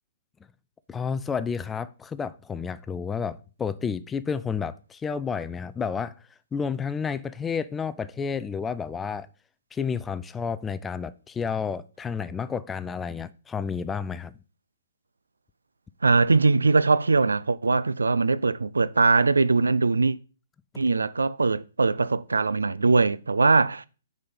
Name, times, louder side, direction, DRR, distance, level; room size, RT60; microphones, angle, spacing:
voice 1, 0.9-6.1 6.5-9.3 9.7-14.4, left 6 dB, 10° left, 0.4 m, -31 dB
voice 2, 16.0-20.2 20.8-23.8, right 3 dB, 75° right, 0.3 m, -21 dB
6.6 x 4.1 x 5.5 m
figure-of-eight pair, 125°, 0 cm